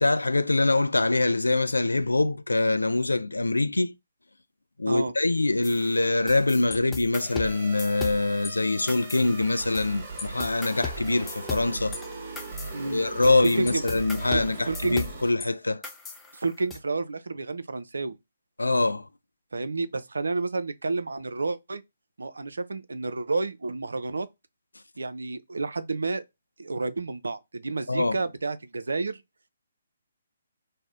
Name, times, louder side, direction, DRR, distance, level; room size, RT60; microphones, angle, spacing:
voice 1, 0.0-3.9 4.8-12.0 12.6-15.8 18.6-19.1 27.9-28.2, left 2 dB, 85° left, 0.3 m, -24 dB
sound 1, 5.6-8.5 8.9-9.9 10.2-15.5 15.8-16.8, left 5 dB, 10° left, 0.4 m, -38 dB
sound 2, 7.4-15.3, right 3 dB, 40° right, 1.0 m, -39 dB
voice 2, 12.7-13.8 14.7-15.0 16.3-18.2 19.5-21.8 22.2-24.3 25.0-26.2 26.6-29.2, right 3 dB, 75° right, 0.4 m, -30 dB
2.6 x 2.0 x 3.5 m
figure-of-eight pair, 140°, 0 cm